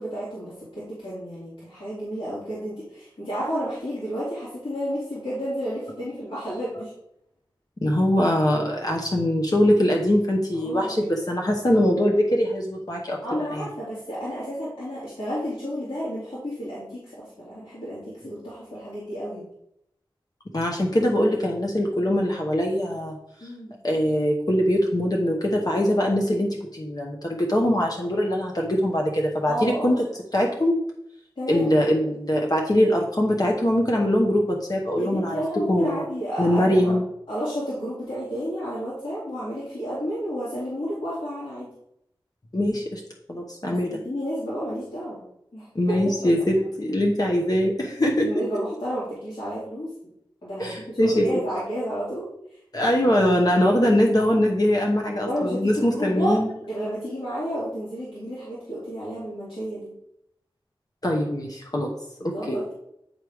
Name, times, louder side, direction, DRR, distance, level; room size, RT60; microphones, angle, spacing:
voice 1, 0.0-6.9 10.5-10.9 13.2-19.5 23.4-23.7 29.5-30.0 31.4-31.7 35.0-37.0 37.3-41.7 43.6-45.2 45.5-46.0 48.1-49.9 50.4-52.3 55.2-59.9 62.2-62.7, equal, 75° left, -10 dB, 2.6 m, -31 dB
voice 2, 7.8-13.2 13.5-13.7 20.5-23.2 23.8-30.1 30.3-30.8 31.5-35.3 35.7-36.0 36.4-37.0 42.5-43.0 43.3-44.0 45.7-48.3 50.6-51.3 52.7-56.5 61.0-61.9 62.2-62.6, left 1 dB, 45° left, 0 dB, 1.0 m, -22 dB
9.2 x 3.5 x 4.8 m, 0.79 s
wide cardioid pair, 65°, 9 cm